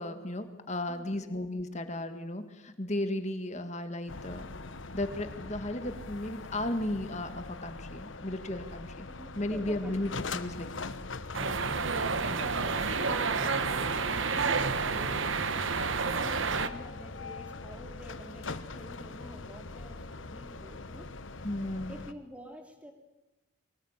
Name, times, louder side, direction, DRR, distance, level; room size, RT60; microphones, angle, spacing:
voice 1, 0.0-4.5 4.9-9.1 9.3-10.9 21.4-22.0, left 1 dB, 35° left, 8 dB, 1.8 m, -35 dB
voice 2, 0.9-1.3 9.2-10.0 11.7-15.4 16.0-21.1 21.9-22.9, equal, 5° right, 4 dB, 2.8 m, -48 dB
sound 1, 4.1-22.1, left 3 dB, 75° left, 1.1 m, -42 dB
sound 2, 11.3-16.7, right 4 dB, 75° right, 1.2 m, -30 dB
23.5 x 19.0 x 8.9 m, 1.0 s
head